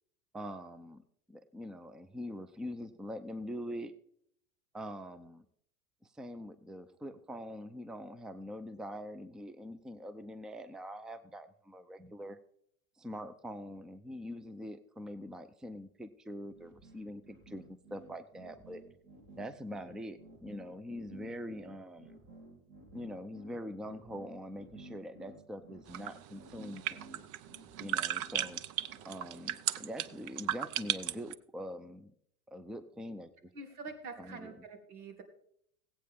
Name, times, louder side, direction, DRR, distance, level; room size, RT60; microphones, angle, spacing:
voice 1, 0.3-3.9 4.7-5.4 6.1-12.4 13.0-18.8 19.4-22.2 22.9-27.0 27.8-28.6 29.0-32.1 32.5-33.5 34.2-34.5, equal, ahead, 13 dB, 0.5 m, -44 dB
sound 1, 16.5-29.1, right 2 dB, 25° right, 2.7 m, -54 dB
sound 2, 25.9-31.3, right 12 dB, 45° right, 0.6 m, -35 dB
voice 2, 33.5-35.2, right 3 dB, 85° right, 6 dB, 2.4 m, -46 dB
17.5 x 8.7 x 3.6 m, 0.68 s
hypercardioid pair, 105°, 43 cm